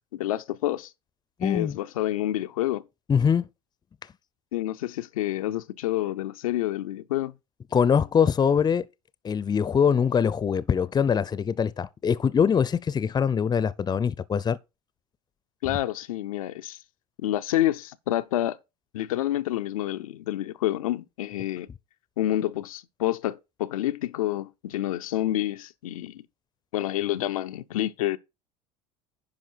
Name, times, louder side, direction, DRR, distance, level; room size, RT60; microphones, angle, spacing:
voice 1, 0.1-0.9 1.4-2.8 4.5-7.3 15.6-16.8 17.2-18.6 18.9-21.7 22.2-26.2 26.7-28.2, left 14 dB, 75° left, 0.5 m, -28 dB
voice 2, 1.4-1.8 3.1-3.4 7.7-8.9 9.2-14.6 15.7-15.8, left 7 dB, 25° left, 0.6 m, -23 dB
10.5 x 5.4 x 4.5 m
hypercardioid pair, 70°, 18 cm